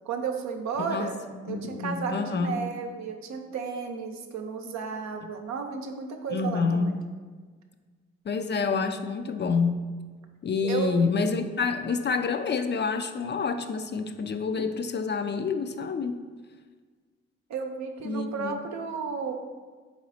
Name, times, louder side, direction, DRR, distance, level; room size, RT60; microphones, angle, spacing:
voice 1, 0.0-1.2 1.5-6.9 10.6-11.0 17.5-19.3, right 5 dB, 70° right, 4 dB, 0.6 m, -33 dB
voice 2, 0.8-2.6 6.3-7.0 8.3-9.8 10.4-16.2 18.0-18.6, left 4 dB, 40° left, 8 dB, 0.4 m, -28 dB
3.9 x 3.0 x 4.1 m, 1.5 s
supercardioid pair, 40°, 29 cm